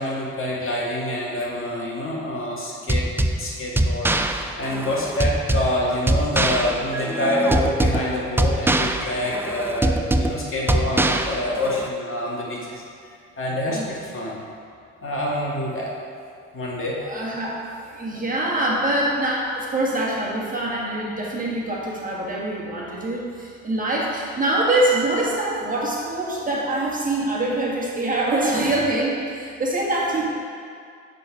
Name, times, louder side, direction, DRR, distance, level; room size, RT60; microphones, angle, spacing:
voice 1, 0.0-3.1 3.4-12.8 13.4-14.4 15.0-15.9 16.5-16.9, left 1 dB, 45° left, -4 dB, 1.8 m, -26 dB
sound 1, 2.9-11.9, right 1 dB, 10° right, 0.3 m, -23 dB
voice 2, 17.0-30.3, right 1 dB, 30° right, -4 dB, 1.7 m, -24 dB
7.6 x 4.1 x 5.0 m, 2.3 s
supercardioid pair, 75°, 29 cm